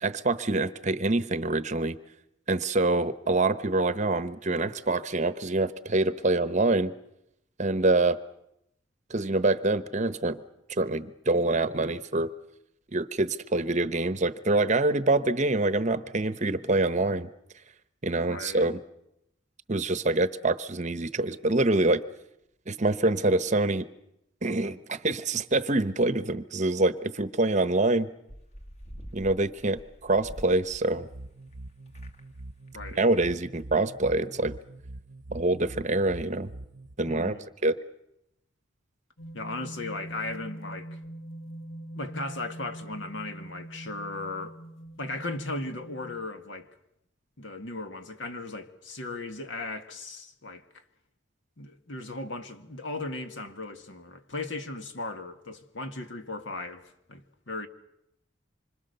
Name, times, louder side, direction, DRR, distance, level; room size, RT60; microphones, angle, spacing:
voice 1, 0.0-2.0 2.5-6.9 7.6-8.2 9.1-10.4 10.7-12.3 12.9-17.3 18.0-18.8 19.7-22.0 22.7-23.8 24.4-28.1 29.1-31.1 33.0-34.5 35.3-36.5 37.0-37.3 37.6-37.8, right 2 dB, 35° right, 0.9 m, -25 dB
voice 2, 18.2-18.7 32.7-33.0 37.1-37.4 39.3-41.0 41.9-44.6 45.0-46.7 47.4-50.6 51.6-57.7, left 2 dB, 65° left, 1.8 m, -37 dB
sound 1, 28.3-31.6 31.9-32.4 32.7-32.8 33.0-33.1, equal, 35° left, 1.9 m, -46 dB
sound 2, 30.9-36.9, right 2 dB, 60° right, 0.8 m, -44 dB
sound 3, 39.2-46.2, right 1 dB, 85° left, 1.4 m, -43 dB
26.5 x 25.0 x 6.8 m
head